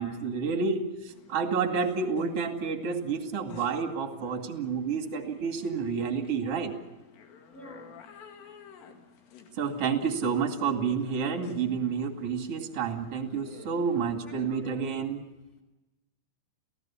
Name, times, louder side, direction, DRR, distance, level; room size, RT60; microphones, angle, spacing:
voice 1, 0.0-6.7 9.5-15.2, right 5 dB, 45° right, 4 dB, 2.0 m, -29 dB
sound 1, 1.1-14.8, left 7 dB, 65° left, 4.1 m, -51 dB
voice 2, 7.5-8.0 13.8-14.8, equal, ahead, 2 dB, 2.5 m, -50 dB
30.0 x 16.5 x 7.2 m, 1.1 s
omnidirectional pair, 5.9 m